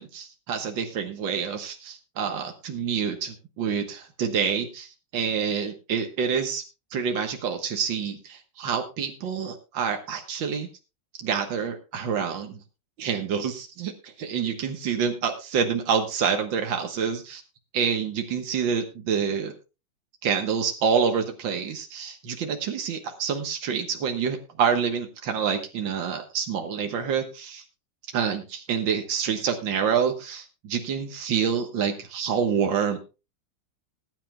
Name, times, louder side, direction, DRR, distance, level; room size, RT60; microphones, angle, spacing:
voice 1, 0.0-6.6 6.9-10.7 11.2-12.6 13.0-17.4 17.7-19.5 20.2-27.6 28.1-33.0, right 7 dB, 90° right, 5 dB, 2.0 m, -27 dB
20.0 x 10.0 x 2.3 m, 0.30 s
omnidirectional pair, 2.0 m